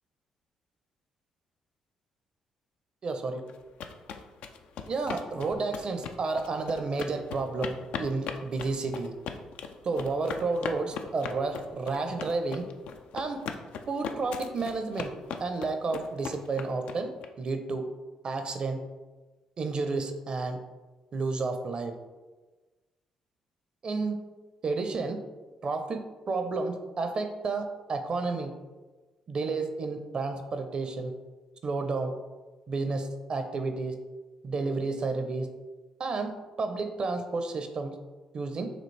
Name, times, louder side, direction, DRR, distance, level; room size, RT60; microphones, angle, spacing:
voice 1, 3.0-3.4 4.9-9.1 9.8-12.6 13.1-13.4 13.9-15.1 15.4-17.1 17.4-17.8 18.2-18.8 19.6-20.6 21.1-21.9 23.8-24.2 24.6-25.2 25.6-26.0 26.3-28.5 29.3-31.1 31.6-32.1 32.7-34.0 34.4-35.5 36.0-36.3 36.6-38.0 38.3-38.7, right 3 dB, 50° right, 7 dB, 0.6 m, -31 dB
sound 1, 3.5-17.3, left 6 dB, 75° left, 0.4 m, -39 dB
5.1 x 2.9 x 3.2 m, 1.2 s
supercardioid pair, 60°, 2 cm